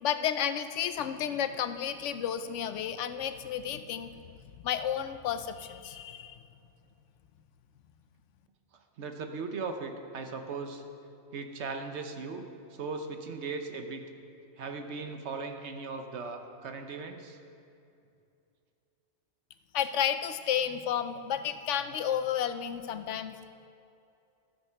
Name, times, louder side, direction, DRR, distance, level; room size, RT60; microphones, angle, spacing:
voice 1, 0.0-4.2 4.6-6.4 19.7-23.3, left 9 dB, 90° left, 11 dB, 0.9 m, -32 dB
voice 2, 9.0-10.8 11.3-12.5 12.7-14.0 14.6-17.4, right 4 dB, 70° right, 5 dB, 1.2 m, -38 dB
13.0 x 7.1 x 5.6 m, 2.6 s
omnidirectional pair, 1.2 m